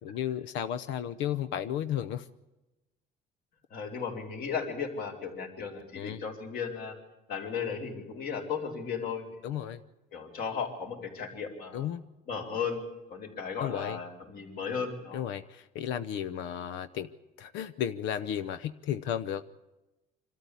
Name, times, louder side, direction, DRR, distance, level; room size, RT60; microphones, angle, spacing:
voice 1, 0.0-2.3 5.9-6.2 9.4-9.8 11.7-12.0 13.6-14.0 15.1-17.1 17.4-19.4, left 10 dB, 80° left, 12 dB, 0.8 m, -33 dB
voice 2, 3.7-6.9 7.3-9.4 10.1-11.9 12.3-12.8 13.1-15.2, left 6 dB, 55° left, 3 dB, 4.3 m, -35 dB
25.5 x 13.0 x 8.5 m, 1.0 s
cardioid pair, 130°, 18 cm